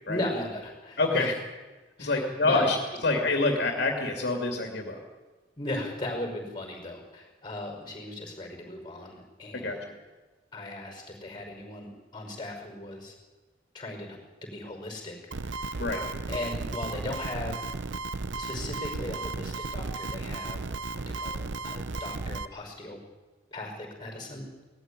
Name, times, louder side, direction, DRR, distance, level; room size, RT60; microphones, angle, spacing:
voice 1, 0.1-1.3 2.0-2.7 5.6-9.9 10.5-13.1 13.7-15.8 16.3-17.6 18.4-20.6 20.9-23.0 23.5-24.5, left 1 dB, 25° left, 2 dB, 5.3 m, -37 dB
voice 2, 1.0-1.3 2.0-2.8 3.0-5.0 9.5-9.8 15.8-16.0, left 2 dB, 65° left, 2 dB, 2.6 m, -26 dB
sound 1, 15.3-22.5, right 3 dB, 80° right, 0.8 m, -34 dB
18.5 x 14.5 x 9.8 m, 1.2 s
head